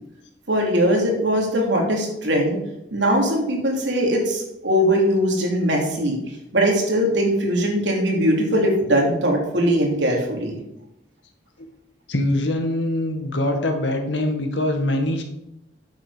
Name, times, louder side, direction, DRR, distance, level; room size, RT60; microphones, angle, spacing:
voice 1, 0.5-2.6 2.9-6.2 6.5-10.6, equal, 85° right, 0 dB, 3.2 m, -20 dB
voice 2, 12.1-15.2, left 1 dB, 85° left, 4 dB, 1.9 m, -23 dB
10.5 x 7.9 x 5.1 m, 0.86 s
head